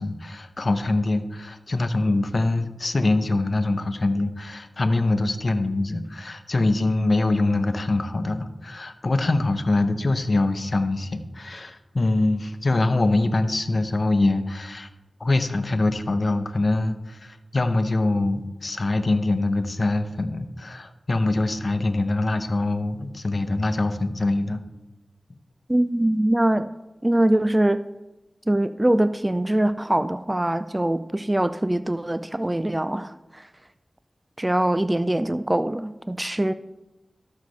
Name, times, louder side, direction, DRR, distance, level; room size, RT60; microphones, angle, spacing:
voice 1, 0.0-14.9 15.2-24.6, left 2 dB, 55° left, 0.8 m, -24 dB
voice 2, 25.7-26.7 27.0-27.8 28.5-33.1 34.4-36.5, right 1 dB, 20° right, 0.3 m, -22 dB
13.5 x 6.5 x 3.2 m
cardioid pair, 45°, 0 cm